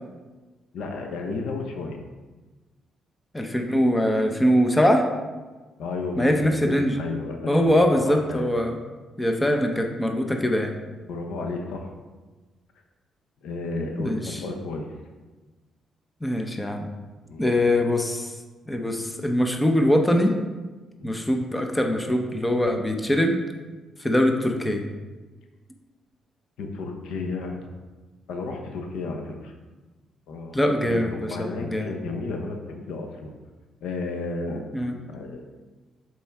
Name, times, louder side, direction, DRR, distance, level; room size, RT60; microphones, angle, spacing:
voice 1, 0.7-2.0 5.8-8.5 11.0-11.9 13.4-14.9 17.3-17.5 21.0-21.2 26.6-27.7 28.3-29.5 30.3-33.3 33.8-34.6 35.1-35.4, left 3 dB, 80° left, 3 dB, 0.8 m, -33 dB
voice 2, 3.3-5.0 6.2-6.9 7.5-8.8 9.2-10.7 13.9-14.4 16.2-16.9 17.4-18.3 18.7-20.4 21.0-23.4 24.0-24.8 30.5-31.9 34.7-35.0, left 1 dB, 10° left, 4 dB, 0.7 m, -22 dB
6.9 x 4.6 x 3.5 m, 1.3 s
cardioid pair, 90°, 0 cm